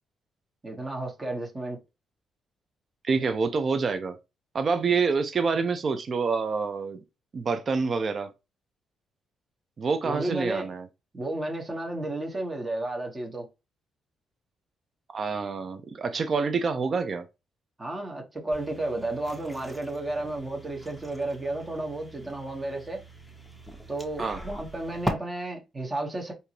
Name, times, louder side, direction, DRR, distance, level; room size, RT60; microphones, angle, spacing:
voice 1, 0.6-1.8 10.0-10.7 11.1-13.5 17.8-23.0 23.9-26.3, right 2 dB, 25° right, 1.2 m, -32 dB
voice 2, 3.0-4.2 4.5-7.0 7.3-8.3 9.8-10.9 15.1-17.3 24.2-24.4, right 4 dB, 45° right, 0.6 m, -27 dB
sound 1, 18.5-25.1, right 1 dB, 5° right, 0.9 m, -39 dB
3.7 x 2.7 x 2.9 m
cardioid pair, 90°, 0 cm